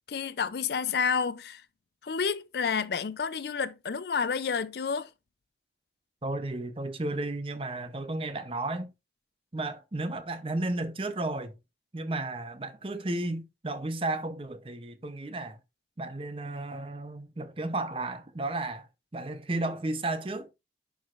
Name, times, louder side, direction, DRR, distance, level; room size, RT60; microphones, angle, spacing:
voice 1, 0.1-1.6 2.0-5.1, left 6 dB, 65° left, 0.5 m, -30 dB
voice 2, 6.2-8.9 9.5-11.5 11.9-15.6 16.0-18.9 19.1-20.5, right 2 dB, 30° right, 0.7 m, -33 dB
10.0 x 4.8 x 2.5 m
head